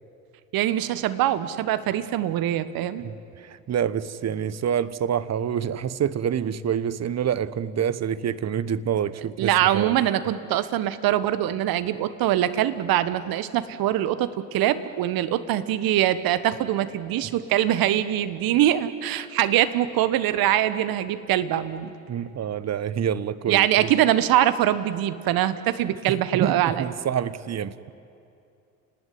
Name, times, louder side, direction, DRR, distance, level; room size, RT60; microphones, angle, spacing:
voice 1, 0.5-3.0 9.4-21.9 23.5-26.8, right 12 dB, 60° right, 13 dB, 1.5 m, -23 dB
voice 2, 3.0-10.0 22.1-23.9 26.3-27.7, right 8 dB, 40° right, 15 dB, 1.1 m, -27 dB
30.0 x 18.5 x 9.5 m, 2.6 s
figure-of-eight pair, 55°, 41 cm